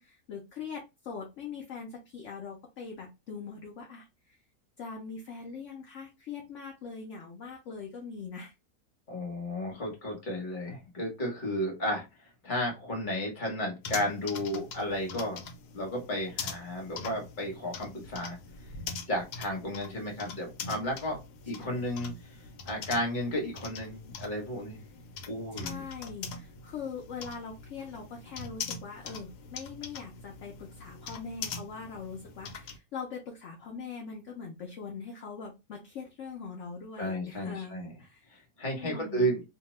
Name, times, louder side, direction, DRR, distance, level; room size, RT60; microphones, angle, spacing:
voice 1, 0.0-4.4 4.8-8.5 21.6-21.9 25.5-38.4 38.7-39.3, left 5 dB, 65° left, 1 dB, 0.8 m, -42 dB
voice 2, 9.1-12.0 12.4-15.4 15.7-18.4 19.1-21.2 21.5-22.4 22.7-24.8 25.3-25.8 37.0-37.9 38.6-39.4, equal, 35° left, 0 dB, 1.1 m, -33 dB
sound 1, 13.8-32.8, left 4 dB, 80° left, 1.2 m, -43 dB
2.7 x 2.2 x 3.0 m, 0.25 s
omnidirectional pair, 1.7 m